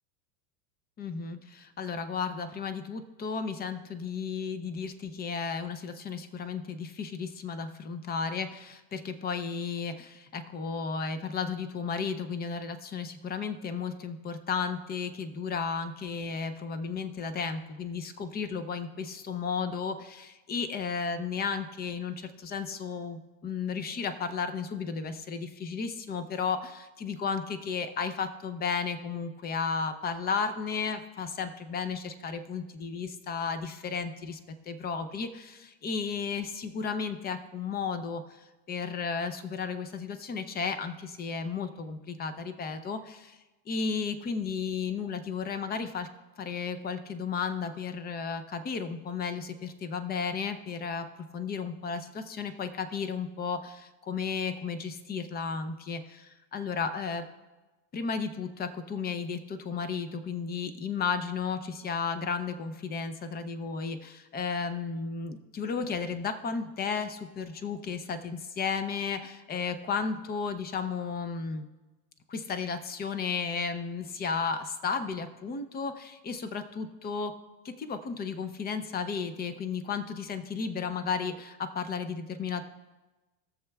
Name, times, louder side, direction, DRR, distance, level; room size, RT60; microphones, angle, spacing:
voice 1, 1.0-38.2 38.7-43.4 43.7-46.1 46.4-51.1 51.3-57.2 57.9-71.6 72.3-77.4 77.6-82.6, left 5 dB, 20° left, 11 dB, 0.5 m, -34 dB
20.5 x 7.0 x 2.3 m, 1.2 s
supercardioid pair, 125°, 49 cm